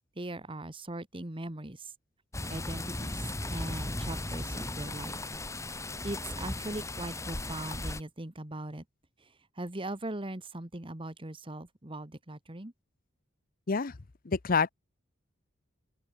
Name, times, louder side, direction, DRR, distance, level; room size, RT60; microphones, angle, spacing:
voice 1, 0.1-1.9 2.5-3.2 3.5-5.3 6.0-8.8 9.2-12.7, right 1 dB, 25° right, 1.6 m, -40 dB
sound 1, 2.3-8.0, left 2 dB, 15° left, 2.0 m, -36 dB
voice 2, 14.2-14.7, left 5 dB, 45° left, 0.7 m, -27 dB
open air
head